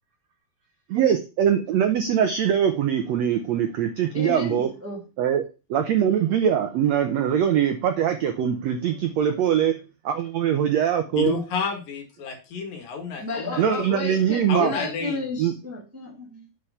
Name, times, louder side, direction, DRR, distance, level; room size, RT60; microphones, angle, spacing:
voice 1, 0.9-4.7 5.2-5.4 5.7-9.7 10.0-11.3 13.6-14.7 15.4-15.5, right 9 dB, 75° right, 7 dB, 1.5 m, -22 dB
voice 2, 4.1-5.0 13.2-16.5, left 2 dB, 5° right, -1 dB, 1.2 m, -32 dB
voice 3, 11.1-13.9 14.5-15.3, left 5 dB, 70° left, 3 dB, 3.8 m, -30 dB
8.3 x 4.9 x 5.8 m, 0.30 s
omnidirectional pair, 4.1 m